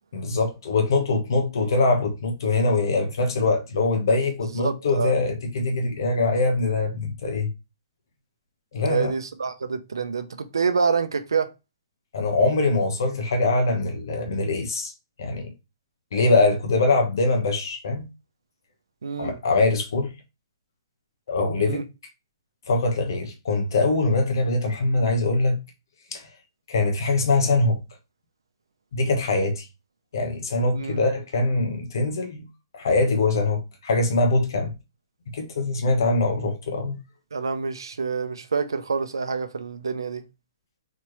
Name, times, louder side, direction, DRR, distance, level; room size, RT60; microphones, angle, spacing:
voice 1, 0.1-7.5 8.7-9.1 12.1-14.9 15.2-15.5 16.1-18.1 19.2-20.1 21.3-21.8 22.7-25.6 26.1-26.2 26.7-27.8 28.9-29.6 30.1-32.4 32.7-34.7 35.3-37.0, left 3 dB, 70° left, 1.1 m, -23 dB
voice 2, 4.6-5.1 8.8-11.5 19.0-19.4 21.6-21.8 30.7-31.0 37.3-40.2, right 5 dB, 90° right, 0.5 m, -27 dB
4.2 x 3.0 x 3.0 m
hypercardioid pair, 140°, 2 cm